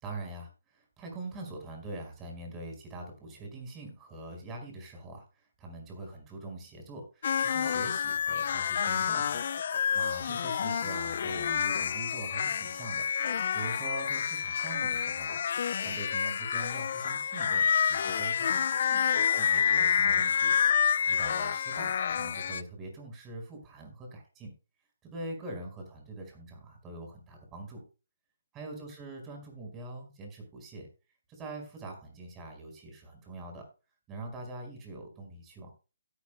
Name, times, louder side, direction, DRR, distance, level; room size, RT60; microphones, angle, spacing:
voice 1, 0.0-9.4 9.9-15.4 15.8-18.6 18.9-20.5 21.1-24.5 25.0-27.8 28.5-30.9 31.3-33.6 34.1-35.7, right 2 dB, 15° right, 3 dB, 5.1 m, -43 dB
sound 1, 7.2-22.6, left 7 dB, 55° left, 0.6 m, -28 dB
17.0 x 10.5 x 2.2 m, 0.33 s
hypercardioid pair, 155°, 0 cm